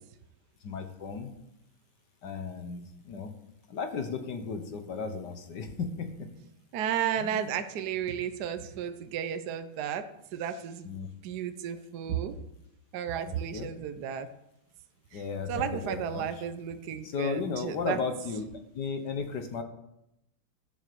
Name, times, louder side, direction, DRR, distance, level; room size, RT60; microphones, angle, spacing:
voice 1, 0.6-1.3 2.2-3.3 3.7-6.3 7.2-7.5 10.8-11.1 13.2-13.7 15.1-16.2 17.0-18.5 18.7-19.6, left 5 dB, 60° left, 7 dB, 1.6 m, -35 dB
voice 2, 6.7-10.9 11.2-12.4 12.9-14.3 15.1-15.2 15.5-18.0, right 9 dB, 60° right, 9 dB, 1.1 m, -33 dB
12.5 x 7.0 x 6.9 m, 0.83 s
omnidirectional pair, 2.3 m